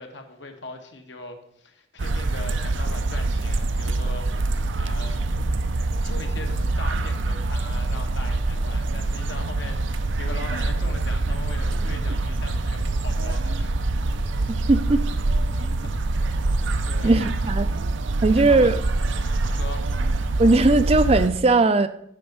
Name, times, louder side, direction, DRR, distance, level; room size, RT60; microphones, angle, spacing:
voice 1, 0.0-5.2 6.0-13.7 16.1-16.3 16.8-17.3 18.3-18.7 19.1-20.0, left 2 dB, 70° left, 4 dB, 1.3 m, -40 dB
sound 1, 2.0-21.3, right 2 dB, 75° right, 0.6 m, -25 dB
voice 2, 14.5-15.0 17.0-17.7 18.2-18.8 20.4-21.9, right 2 dB, 30° right, 11 dB, 0.4 m, -18 dB
8.6 x 5.3 x 5.8 m, 0.71 s
head